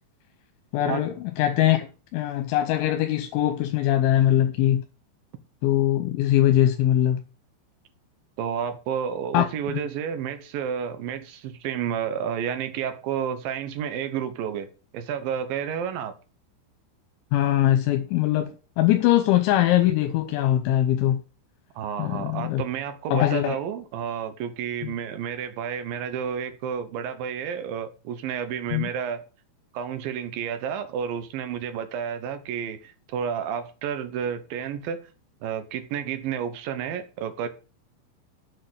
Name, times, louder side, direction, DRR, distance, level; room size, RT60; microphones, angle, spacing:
voice 1, 0.7-4.8 5.6-7.2 9.3-9.8 17.3-21.2 22.0-22.6 23.1-23.6 24.8-24.9 28.7-28.9, left 13 dB, 85° left, 3.2 m, -22 dB
voice 2, 8.4-14.7 14.9-16.1 21.8-29.2 29.7-35.0 35.4-37.5, right 8 dB, 75° right, 2.1 m, -31 dB
7.6 x 6.6 x 7.8 m
omnidirectional pair, 5.4 m